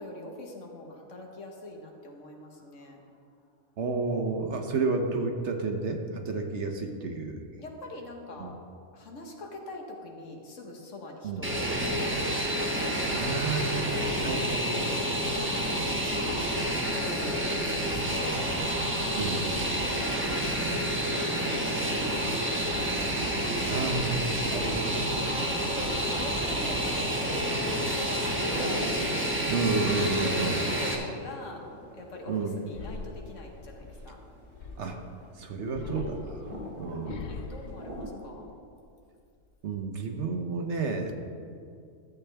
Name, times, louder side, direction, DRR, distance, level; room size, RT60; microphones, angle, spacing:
voice 1, 0.0-3.0 4.7-4.9 7.6-8.6 8.9-12.3 12.8-13.0 13.3-13.4 15.1-16.5 16.9-18.4 19.8-23.0 25.3-28.9 30.2-31.6 31.9-34.2 36.5-38.5, left 2 dB, 65° left, 1 dB, 1.5 m, -43 dB
voice 2, 3.8-7.4 8.4-8.5 11.2-11.4 13.1-15.1 19.2-19.5 23.7-25.2 29.5-30.6 32.3-32.6 34.8-35.0 35.4-36.3 36.8-37.3 39.6-41.1, right 4 dB, 60° right, 4 dB, 1.0 m, -31 dB
Fixed-wing aircraft airplane, 11.4-30.9, right 1 dB, 10° right, 1.0 m, -29 dB
sound 1, 28.3-38.1, equal, 30° right, 2.1 m, -43 dB
sound 2, 32.7-35.1 35.7-38.8 39.2-39.8, left 4 dB, 80° left, 0.4 m, -43 dB
13.5 x 8.1 x 3.4 m, 2.4 s
omnidirectional pair, 1.4 m